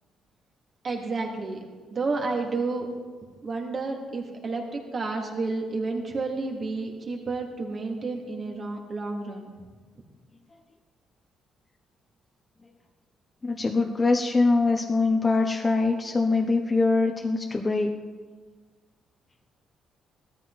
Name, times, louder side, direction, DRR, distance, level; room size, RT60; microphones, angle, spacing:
voice 1, 0.8-1.6 1.9-2.9 3.4-9.5, right 3 dB, 45° right, 0 dB, 3.1 m, -30 dB
voice 2, 13.4-17.9, left 3 dB, 25° left, 2 dB, 1.0 m, -23 dB
17.5 x 13.5 x 4.3 m, 1.4 s
cardioid pair, 90°, 0 cm